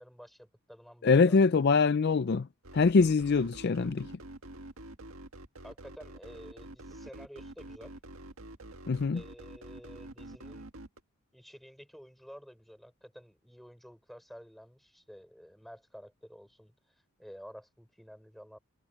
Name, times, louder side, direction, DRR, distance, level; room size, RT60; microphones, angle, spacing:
voice 1, 0.0-1.7 5.6-8.0 9.1-10.7 11.3-16.7 17.2-18.6, equal, ahead, 5.6 m, -51 dB
voice 2, 1.0-2.5 2.7-4.1 8.9-9.2, left 4 dB, 50° left, 0.4 m, -24 dB
sound 1, 2.6-11.0, right 1 dB, 70° right, 1.8 m, -47 dB
head